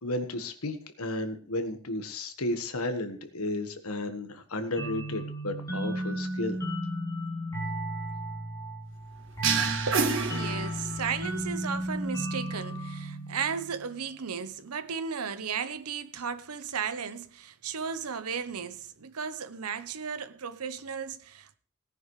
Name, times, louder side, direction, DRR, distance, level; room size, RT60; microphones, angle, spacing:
voice 1, 0.0-6.6, left 1 dB, 80° left, 1.5 m, -33 dB
sound 1, 4.8-14.1, right 1 dB, 15° left, 4.2 m, -34 dB
sound 2, 9.4-11.2, right 5 dB, 60° right, 1.5 m, -28 dB
voice 2, 9.9-21.6, right 6 dB, 85° right, 0.9 m, -35 dB
17.5 x 10.0 x 3.3 m
head